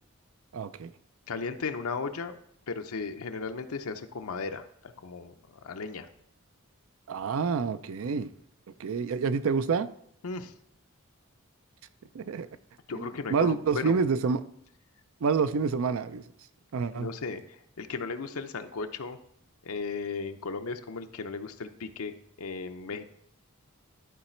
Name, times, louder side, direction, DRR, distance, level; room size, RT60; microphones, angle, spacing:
voice 1, 0.5-0.9 7.1-8.3 8.8-9.9 12.1-12.5 12.9-14.4 15.2-16.2 16.7-17.1, right 5 dB, 70° right, 13 dB, 0.4 m, -28 dB
voice 2, 1.3-2.3 2.7-5.3 5.6-6.1 10.2-10.5 12.9-14.0 16.9-19.2 19.6-22.1 22.4-23.0, left 4 dB, 85° left, 7 dB, 0.6 m, -36 dB
11.5 x 4.0 x 4.4 m, 0.69 s
head